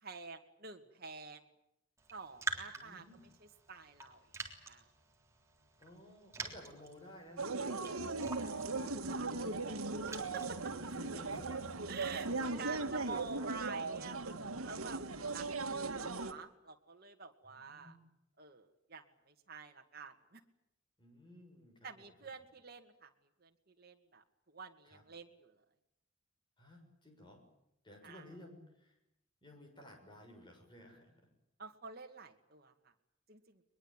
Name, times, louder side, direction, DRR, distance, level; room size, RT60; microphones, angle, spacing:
voice 1, 0.0-1.5 2.1-4.2 4.7-4.9 9.0-10.7 11.9-12.3 12.6-18.0 18.4-20.4 21.8-23.1 23.4-25.6 28.0-28.3 31.6-32.7 33.3-33.6, right 5 dB, 45° right, 3 dB, 2.2 m, -49 dB
Raindrop, 2.0-12.6, right 3 dB, 15° right, 3.6 m, -48 dB
voice 2, 2.7-3.3 5.8-8.0 10.9-11.8 12.2-13.2 17.5-18.0 21.0-22.1 24.8-25.0 26.6-27.4 27.8-29.0 29.4-31.3, left 1 dB, 20° left, 4 dB, 6.8 m, -56 dB
sound 1, 7.4-16.3, right 3 dB, 85° right, 1.9 m, -38 dB
sound 2, 8.0-13.2, right 1 dB, 85° left, 2.0 m, -59 dB
22.5 x 22.5 x 9.0 m, 0.80 s
head